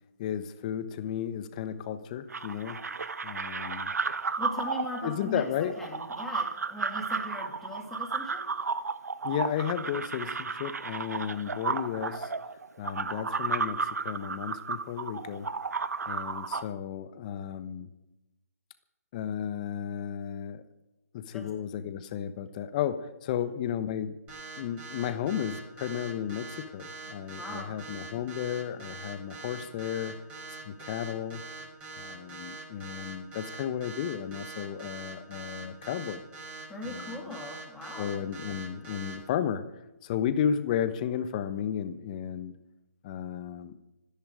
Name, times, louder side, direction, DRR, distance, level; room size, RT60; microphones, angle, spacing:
voice 1, 0.2-2.8 3.2-3.9 5.0-5.7 9.2-12.3 12.8-15.5 16.1-17.9 19.1-20.6 21.1-24.1 24.6-30.1 30.6-31.4 32.0-36.2 36.9-37.4 38.0-39.6 40.0-42.5 43.0-43.7, left 9 dB, 25° left, 11 dB, 1.1 m, -33 dB
sound 1, 2.3-16.6, right 4 dB, 75° right, 1.1 m, -33 dB
voice 2, 4.4-8.4 21.3-21.5 27.4-27.7 36.7-38.1, left 2 dB, 5° left, -1 dB, 2.8 m, -39 dB
sound 2, 24.3-39.1, right 4 dB, 15° right, 7.0 m, -43 dB
26.0 x 10.5 x 5.0 m, 0.99 s
figure-of-eight pair, 155°, 9 cm